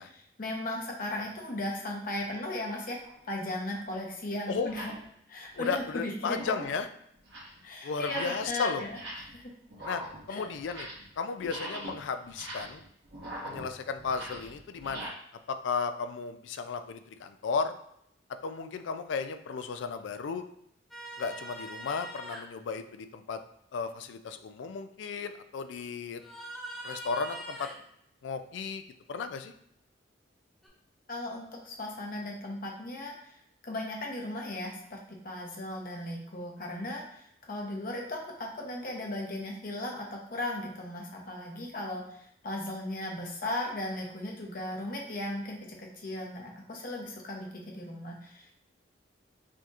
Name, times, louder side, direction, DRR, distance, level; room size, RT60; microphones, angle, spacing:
voice 1, 0.0-3.0 3.3-4.9 5.3-6.5 7.6-9.0 9.3-9.5 10.3-10.5 31.1-33.3 33.6-35.0 35.2-48.5, left 1 dB, 50° left, 0 dB, 0.8 m, -37 dB
sound 1, 3.0-3.2 3.9-4.0 4.6-5.0 5.4-5.9 6.3-6.8 7.1-7.6 8.0-8.6 8.8-9.4 9.7-11.1 11.4-15.1, right 1 dB, 65° right, 1.1 m, -42 dB
voice 2, 5.5-6.9 7.8-8.8 9.9-10.0 10.3-10.9 11.2-12.8 13.4-15.1 15.5-17.8 18.4-20.4 21.2-23.4 23.7-26.2 26.8-27.7 28.2-28.8 29.1-29.5, left 5 dB, 80° left, 9 dB, 0.3 m, -34 dB
sound 2, 20.9-22.4 26.2-27.8 30.6-30.7, right 1 dB, ahead, 0.7 m, -42 dB
4.9 x 2.9 x 2.4 m, 0.71 s
head